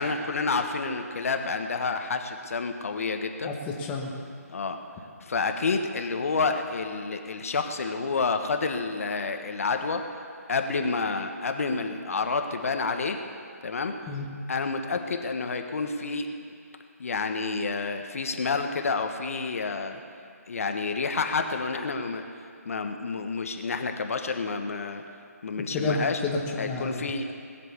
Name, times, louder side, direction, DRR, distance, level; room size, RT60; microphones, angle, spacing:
voice 1, 0.0-3.5 4.5-4.8 5.2-10.0 10.5-13.2 13.6-13.9 14.5-16.3 17.0-20.0 20.5-22.2 22.6-25.0 25.4-26.2 26.6-27.3, left 4 dB, 60° left, 6 dB, 1.3 m, -29 dB
voice 2, 3.4-4.1 14.1-14.3 25.7-27.0, left 3 dB, 15° left, -1 dB, 1.4 m, -30 dB
20.0 x 7.6 x 7.1 m, 2.3 s
figure-of-eight pair, 155°, 9 cm